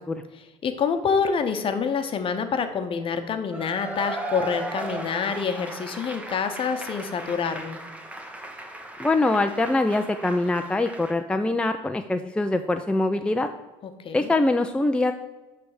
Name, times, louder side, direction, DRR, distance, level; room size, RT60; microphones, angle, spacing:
voice 1, 0.3-7.8 13.8-14.3, left 6 dB, 45° left, 8 dB, 0.9 m, -27 dB
Cheering / Applause / Crowd, 3.5-11.2, right 2 dB, 10° right, 1.1 m, -37 dB
voice 2, 9.0-13.5 14.1-15.1, left 2 dB, 10° left, 7 dB, 0.4 m, -23 dB
9.2 x 3.4 x 4.8 m, 1.1 s
supercardioid pair, 90°, 13 cm